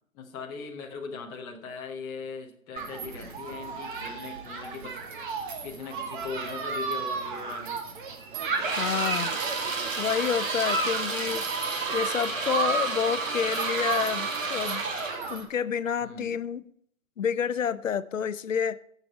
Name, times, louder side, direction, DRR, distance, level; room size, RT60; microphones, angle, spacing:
voice 1, 0.1-5.0 5.6-7.8 16.0-16.3, left 5 dB, 10° left, 0.7 m, -39 dB
Human group actions, 2.8-15.4, right 4 dB, 40° right, 1.7 m, -33 dB
sound 1, 8.6-15.3, right 4 dB, 65° right, 2.4 m, -31 dB
voice 2, 8.8-9.3 10.0-11.4 11.9-14.8 15.3-16.6 17.2-18.8, left 7 dB, 70° left, 0.7 m, -29 dB
14.5 x 6.9 x 4.5 m
hypercardioid pair, 150°, 41 cm